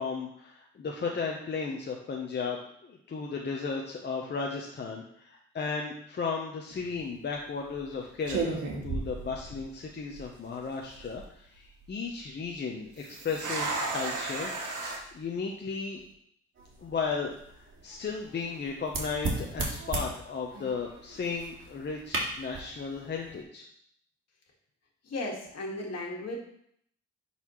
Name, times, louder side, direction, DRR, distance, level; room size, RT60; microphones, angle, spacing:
voice 1, 0.0-14.5 15.1-16.0 16.8-23.7, left 5 dB, 35° left, 0 dB, 0.8 m, -35 dB
sound 1, 6.7-7.0 7.7-7.9 8.3-9.8 10.1-10.2 10.8-11.2 13.0-15.0, right 3 dB, 75° right, 1.6 m, -34 dB
sound 2, 16.5-23.4, right 2 dB, 40° right, 2.3 m, -38 dB
voice 2, 25.0-26.4, left 2 dB, 55° left, 0 dB, 1.9 m, -35 dB
10.5 x 4.2 x 3.1 m, 0.69 s
cardioid pair, 90°, 30 cm